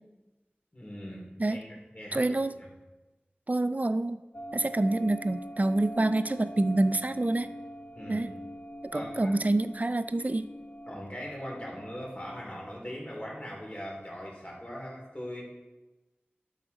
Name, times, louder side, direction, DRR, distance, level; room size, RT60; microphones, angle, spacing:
voice 1, 0.7-2.2 7.9-8.3 8.9-9.3 10.9-15.4, equal, 35° left, -3 dB, 2.7 m, -40 dB
voice 2, 2.1-2.6 3.5-4.2 4.5-7.5 8.1-8.3 8.8-10.5, right 2 dB, 40° right, 12 dB, 0.4 m, -27 dB
sound 1, 4.3-12.4, equal, 55° left, 0.6 m, -43 dB
11.0 x 6.5 x 3.9 m, 1.1 s
wide cardioid pair, 45°, 4 cm